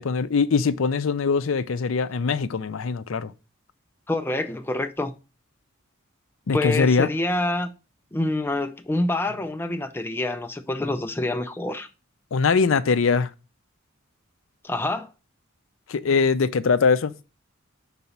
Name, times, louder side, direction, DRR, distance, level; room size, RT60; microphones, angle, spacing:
voice 1, 0.0-3.3 6.5-7.1 12.3-13.3 15.9-17.1, left 5 dB, 65° left, 0.5 m, -22 dB
voice 2, 4.1-5.1 6.5-7.7 8.1-11.9 14.6-15.1, left 2 dB, 10° left, 0.4 m, -26 dB
5.8 x 4.1 x 5.4 m
head